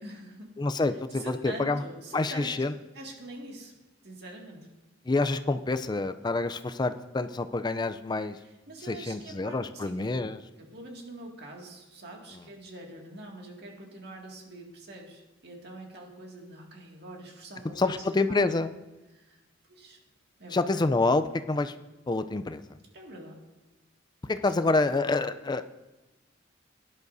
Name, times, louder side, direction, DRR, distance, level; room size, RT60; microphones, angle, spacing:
voice 1, 0.0-0.5 0.9-3.7 4.0-4.7 8.3-10.2 10.6-17.9 18.3-18.4 19.1-19.4 19.7-20.0 20.4-20.8 22.9-23.4 24.2-24.4, right 1 dB, 55° right, 0 dB, 2.1 m, -45 dB
voice 2, 0.6-1.8 2.1-2.7 5.1-8.4 8.9-10.4 17.8-18.7 20.5-21.7 22.1-22.6 24.3-25.7, left 3 dB, 20° left, 10 dB, 0.4 m, -27 dB
17.0 x 11.0 x 2.7 m, 1.1 s
head